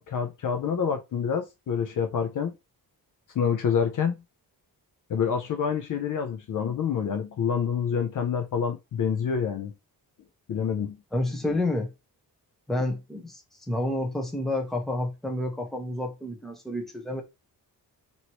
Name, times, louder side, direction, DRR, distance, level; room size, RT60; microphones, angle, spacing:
voice 1, 0.0-2.5 3.3-4.2 5.1-9.7 10.5-11.0, left 7 dB, 55° left, 0.5 m, -27 dB
voice 2, 11.1-11.9 12.7-13.4 13.7-17.2, left 1 dB, ahead, 0.7 m, -29 dB
2.9 x 2.7 x 2.9 m
wide cardioid pair, 135°, 39 cm